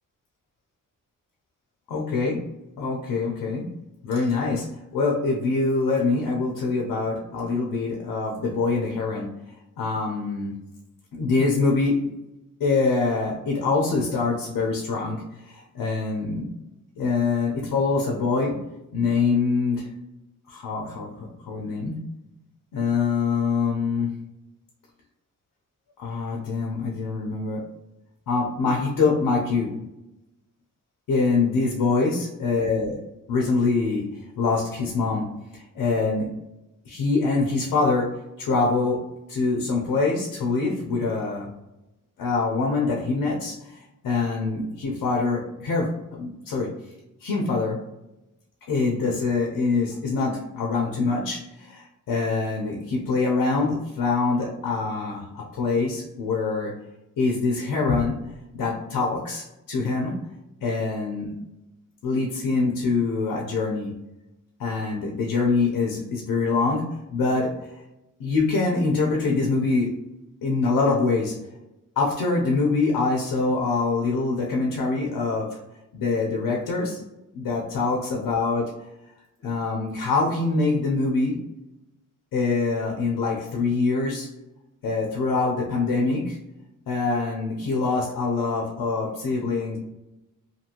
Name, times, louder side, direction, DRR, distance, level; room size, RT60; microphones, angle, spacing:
voice 1, 1.9-2.4 2.8-3.7 4.0-4.7 4.9-9.3 9.8-10.6 11.1-12.0 12.6-16.5 17.0-18.6 18.9-19.9 20.5-22.0 22.7-24.1 26.0-27.6 28.3-29.7 31.1-33.0 33.3-34.1 34.4-35.3 35.5-36.3 36.9-41.5 42.2-46.7 47.2-47.8 48.7-56.7 57.2-58.2 58.5-60.2 60.6-61.3 62.0-63.9 64.6-67.6 68.2-70.0 70.4-71.4 72.0-75.6 75.9-77.0 77.3-78.7 79.4-81.4 82.3-84.3 84.8-86.4 86.9-89.8, left 3 dB, 90° left, -1 dB, 0.7 m, -24 dB
2.7 x 2.6 x 2.8 m, 0.93 s
cardioid pair, 80°, 34 cm